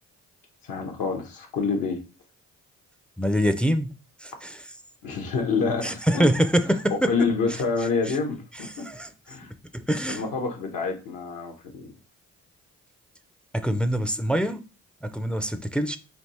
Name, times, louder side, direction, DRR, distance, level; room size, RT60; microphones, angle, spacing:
voice 1, 0.6-2.0 5.0-6.2 6.9-8.9 9.3-9.5 10.1-11.9, left 4 dB, 80° left, 1.1 m, -27 dB
voice 2, 3.2-3.9 4.2-4.6 5.8-7.1 8.1-8.2 8.8-9.1 9.7-10.2 13.5-14.6 15.0-16.0, equal, 5° left, 0.4 m, -24 dB
3.4 x 2.7 x 4.1 m
cardioid pair, 70°, 34 cm